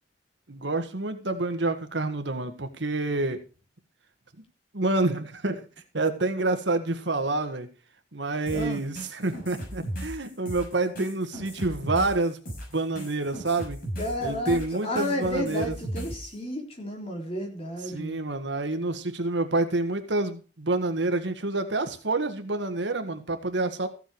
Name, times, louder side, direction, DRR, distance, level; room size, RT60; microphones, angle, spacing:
voice 1, 0.5-3.4 4.7-5.7 5.9-7.7 8.1-12.4 12.7-13.8 14.2-15.8 17.9-23.9, right 2 dB, 70° right, 7 dB, 1.7 m, -28 dB
sound 1, 8.5-16.3, right 1 dB, 50° left, 6.6 m, -37 dB
voice 2, 14.0-18.2, left 1 dB, 30° left, 1 dB, 3.7 m, -32 dB
15.0 x 8.0 x 4.7 m, 0.35 s
head